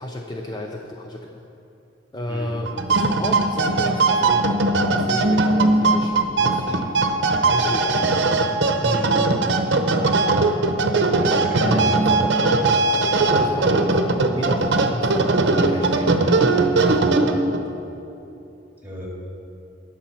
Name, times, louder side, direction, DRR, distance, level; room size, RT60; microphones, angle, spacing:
voice 1, 0.0-1.4 2.1-4.6 4.9-6.9 7.4-8.0 11.5-14.0 14.3-16.7, left 1 dB, 25° left, 1 dB, 0.5 m, -32 dB
sound 1, 2.7-17.6, right 3 dB, 70° right, 0.8 m, -19 dB
voice 2, 8.8-9.2 11.2-12.0 18.8-19.1, equal, 10° right, -3 dB, 2.4 m, -30 dB
18.5 x 6.7 x 4.4 m, 2.8 s
head